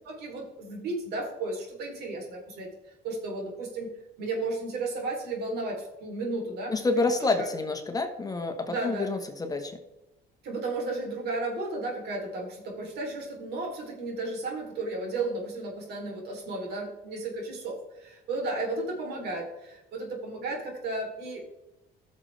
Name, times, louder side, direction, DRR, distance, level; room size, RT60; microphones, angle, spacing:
voice 1, 0.1-2.7 3.0-7.5 8.7-9.1 10.4-21.5, right 2 dB, 75° right, 0 dB, 3.5 m, -34 dB
voice 2, 6.7-9.7, left 3 dB, 20° left, 5 dB, 1.3 m, -28 dB
14.5 x 6.5 x 3.4 m, 0.93 s
cardioid pair, 110°, 17 cm